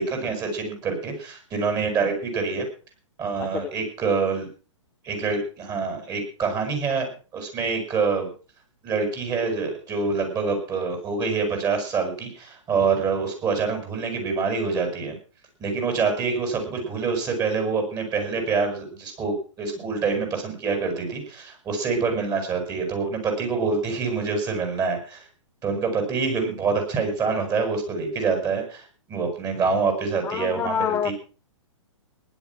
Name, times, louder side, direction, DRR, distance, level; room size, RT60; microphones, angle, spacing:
voice 1, 0.0-2.7 3.2-4.5 5.0-8.3 8.8-15.2 15.6-25.3 25.6-31.1, right 4 dB, 20° right, 5 dB, 6.9 m, -26 dB
voice 2, 3.4-3.7 30.2-31.1, left 8 dB, 10° left, 8 dB, 0.6 m, -27 dB
16.5 x 12.0 x 6.1 m, 0.39 s
hypercardioid pair, 130°, 17 cm